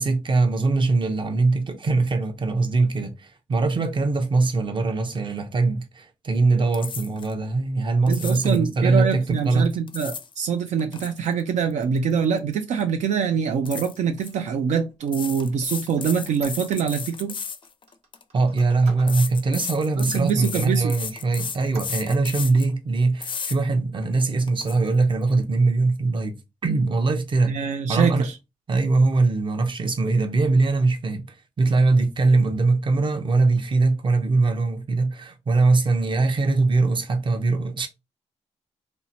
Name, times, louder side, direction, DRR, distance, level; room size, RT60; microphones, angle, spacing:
voice 1, 0.0-9.7 18.3-26.4 26.6-27.6 27.9-28.3 28.7-37.9, right 3 dB, 40° right, 0.6 m, -22 dB
sound 1, 6.7-7.3 8.1-8.6 9.6-10.3 10.7-12.5 12.8-13.0 13.7-14.3 15.1-18.2 19.1-22.7 23.2-23.6 24.0-24.1 24.5-24.8, left 6 dB, 45° left, 0.4 m, -34 dB
voice 2, 8.1-17.3 20.0-20.9 27.5-28.4, right 6 dB, 80° right, 0.4 m, -24 dB
Squeak, 14.2-17.2 17.6-19.2 19.7-19.8 20.2-20.9 21.2-22.3, right 3 dB, 65° right, 1.0 m, -47 dB
2.8 x 2.1 x 2.7 m
cardioid pair, 80°, 12 cm